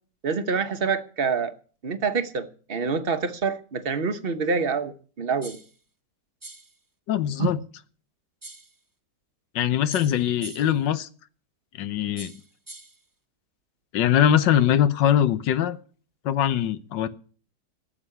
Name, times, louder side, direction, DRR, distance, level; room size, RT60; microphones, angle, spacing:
voice 1, 0.2-1.5 1.8-5.6, right 5 dB, 40° right, 1.1 m, -26 dB
sound 1, 5.4-5.8 6.4-6.8 8.4-8.8 9.9-10.8 12.2-13.0, right 2 dB, 15° right, 0.8 m, -43 dB
voice 2, 7.1-7.6 9.5-11.1 11.7-12.3 13.9-15.8 16.2-17.1, left 10 dB, 80° left, 1.5 m, -22 dB
14.0 x 7.4 x 9.8 m
omnidirectional pair, 1.9 m